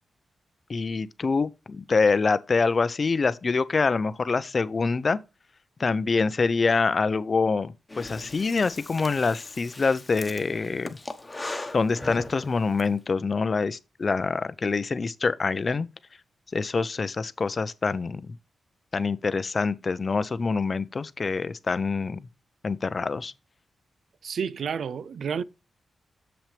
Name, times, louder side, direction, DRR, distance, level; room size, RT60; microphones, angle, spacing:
voice 1, 0.7-5.2 5.8-11.0 11.4-15.9 16.5-18.4 18.9-22.2 22.6-23.3, left 4 dB, 40° left, 0.5 m, -25 dB
Breathing, 7.9-12.9, left 2 dB, 20° left, 1.1 m, -39 dB
voice 2, 24.2-25.4, right 7 dB, 70° right, 0.4 m, -30 dB
7.2 x 6.0 x 3.2 m
cardioid pair, 95°, 0 cm